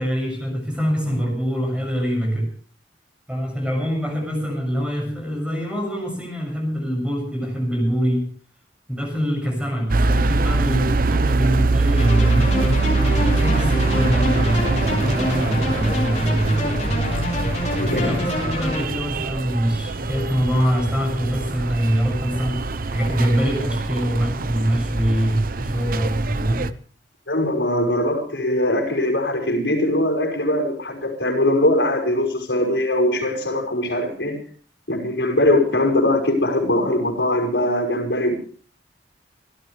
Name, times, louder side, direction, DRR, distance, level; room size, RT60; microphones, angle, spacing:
voice 1, 0.0-2.5 3.3-8.3 8.9-12.5 13.0-17.0 17.9-22.6 22.9-26.7, equal, 5° right, 1 dB, 6.9 m, -24 dB
sound 1, 9.9-26.7, right 3 dB, 50° right, 0.7 m, -23 dB
sound 2, 12.0-18.8, left 1 dB, 40° left, 5.6 m, -25 dB
voice 2, 17.7-18.2 27.3-34.4 34.9-38.4, left 1 dB, 85° left, 3 dB, 5.5 m, -21 dB
28.0 x 13.5 x 3.4 m, 0.43 s
head